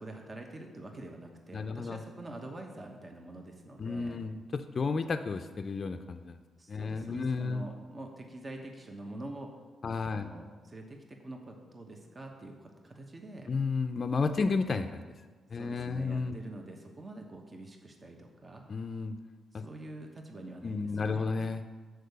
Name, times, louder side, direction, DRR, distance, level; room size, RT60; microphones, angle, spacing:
voice 1, 0.0-4.2 6.6-9.6 9.8-13.5 15.5-18.6 19.5-21.3, right 2 dB, 35° right, 2 dB, 1.0 m, -46 dB
voice 2, 1.5-2.0 3.8-6.4 6.7-7.6 9.8-10.3 13.5-15.1 15.5-16.4 18.7-19.2 19.5-19.6 20.6-21.6, left 4 dB, 50° left, 7 dB, 0.4 m, -32 dB
6.6 x 4.7 x 6.6 m, 1.4 s
cardioid pair, 65°, 0 cm